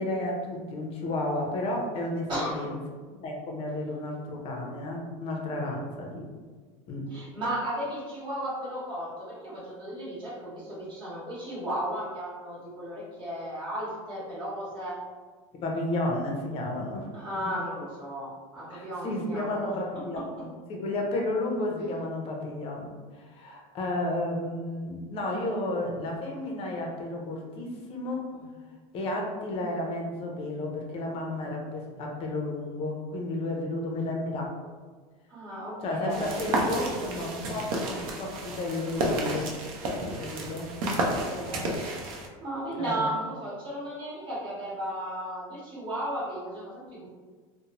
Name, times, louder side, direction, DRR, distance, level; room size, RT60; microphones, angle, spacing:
voice 1, 0.0-2.8 3.1-6.3 6.9-7.1 15.5-17.1 17.4-17.5 18.7-28.3 28.9-34.6 35.8-39.5 40.2-40.7 42.7-43.1, left 1 dB, 35° left, 1 dB, 0.5 m, -32 dB
voice 2, 2.3-2.7 5.6-5.9 7.1-15.0 17.1-19.7 20.1-20.2 28.3-28.5 35.3-37.0 40.8-47.1, right 1 dB, 25° right, -7 dB, 1.1 m, -35 dB
sound 1, 36.1-42.3, right 1 dB, 85° right, 0.6 m, -31 dB
2.5 x 2.0 x 2.9 m, 1.5 s
supercardioid pair, 145°, 17 cm